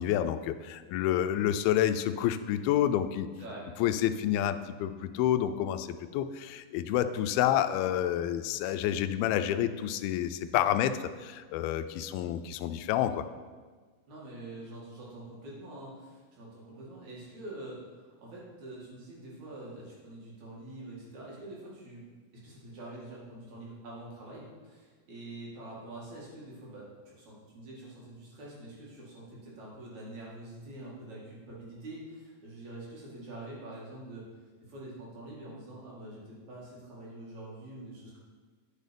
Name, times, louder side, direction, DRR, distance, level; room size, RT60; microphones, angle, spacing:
voice 1, 0.0-3.3 3.8-13.3, left 11 dB, 85° left, 10 dB, 2.4 m, -29 dB
voice 2, 14.1-22.0 22.4-34.2 34.6-38.2, right 1 dB, 55° right, -5 dB, 3.3 m, -45 dB
9.8 x 6.5 x 5.2 m, 1.4 s
omnidirectional pair, 4.3 m